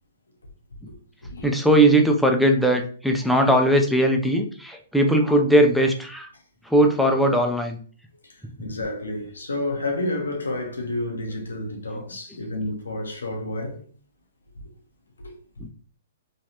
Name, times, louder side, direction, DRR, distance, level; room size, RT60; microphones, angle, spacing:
voice 1, 1.4-6.3 6.6-7.8 11.3-11.4 11.9-12.0 12.3-12.4 15.6-15.7, right 1 dB, ahead, 0.4 m, -19 dB
voice 2, 8.2-13.8 15.2-15.3, left 1 dB, 90° left, 0.8 m, -30 dB
3.2 x 2.3 x 2.8 m
hypercardioid pair, 125°, 0 cm